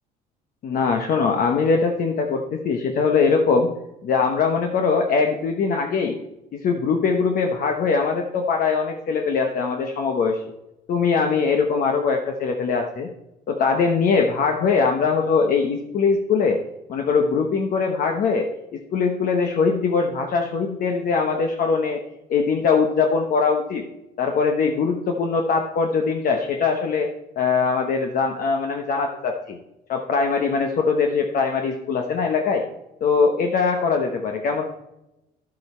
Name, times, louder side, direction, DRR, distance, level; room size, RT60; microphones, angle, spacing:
voice 1, 0.6-3.7 4.0-6.2 6.5-10.4 10.9-13.1 13.5-16.6 16.9-22.0 22.3-23.8 24.2-27.1 27.4-29.6 29.9-32.6 33.0-34.6, left 5 dB, 55° left, 3 dB, 1.1 m, -21 dB
11.0 x 7.7 x 4.4 m, 0.91 s
cardioid pair, 110°, 17 cm